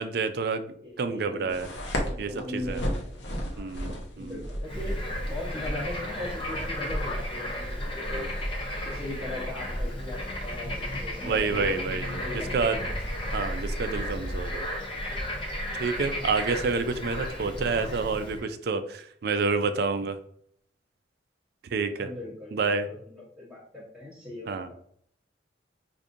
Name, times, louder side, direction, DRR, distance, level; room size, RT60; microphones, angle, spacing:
voice 1, 0.0-0.6 1.0-1.7 2.2-2.8 3.6-4.4 8.1-8.2 11.2-12.8 13.3-14.7 15.8-20.2 21.7-22.1 22.5-22.9 24.5-24.7, right 4 dB, 55° right, 9 dB, 0.3 m, -29 dB
voice 2, 0.8-1.6 2.0-3.1 3.5-3.8 4.2-8.3 8.8-11.8 12.2-12.9 16.1-16.5 22.0-24.7, left 2 dB, ahead, -9 dB, 0.9 m, -39 dB
sound 1, 1.5-15.0, equal, 70° left, 0.7 m, -37 dB
Bird / Frog, 4.6-18.4, equal, 25° left, 0.6 m, -34 dB
4.9 x 2.6 x 2.5 m, 0.63 s
head